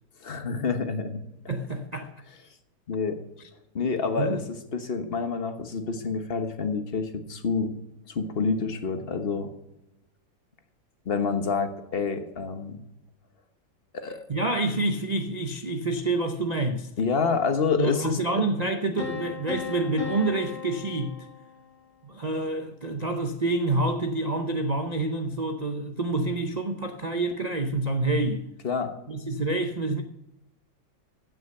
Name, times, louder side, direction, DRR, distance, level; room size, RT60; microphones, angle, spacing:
voice 1, 0.2-1.2 2.9-3.2 3.7-7.7 8.1-9.5 11.0-12.8 13.9-14.2 17.0-18.4 28.6-28.9, left 5 dB, 35° left, 1.2 m, -28 dB
voice 2, 1.5-2.1 4.2-4.4 14.3-16.9 17.8-21.3 22.0-28.5 29.1-30.0, right 2 dB, 80° right, 0.3 m, -27 dB
sound 1, 19.0-21.9, left 7 dB, 65° left, 3.0 m, -37 dB
15.5 x 6.3 x 6.7 m
omnidirectional pair, 2.0 m